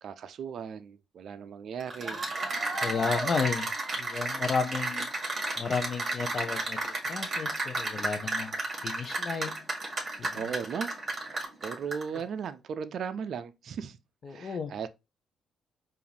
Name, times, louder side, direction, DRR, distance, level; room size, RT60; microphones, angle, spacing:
voice 1, 0.0-2.2 2.9-3.2 10.3-10.9 11.6-14.0 14.3-14.9, right 7 dB, 60° right, 0.4 m, -37 dB
Cheering / Applause, 1.8-12.2, right 2 dB, 35° right, 1.8 m, -33 dB
voice 2, 2.8-3.7 4.0-5.1 5.6-8.5 8.8-9.6 10.2-10.4 14.2-14.7, left 5 dB, 45° left, 0.6 m, -32 dB
4.8 x 2.5 x 3.3 m
cardioid pair, 90°, 0 cm